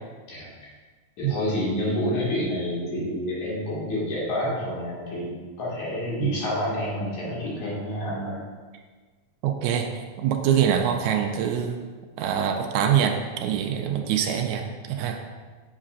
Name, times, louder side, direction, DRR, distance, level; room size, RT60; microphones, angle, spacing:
voice 1, 1.2-8.4, left 1 dB, 75° left, -7 dB, 3.4 m, -28 dB
voice 2, 9.4-9.9 10.2-11.8 12.2-15.2, right 9 dB, 80° right, 4 dB, 1.9 m, -24 dB
7.4 x 7.3 x 2.5 m, 1.4 s
omnidirectional pair, 3.4 m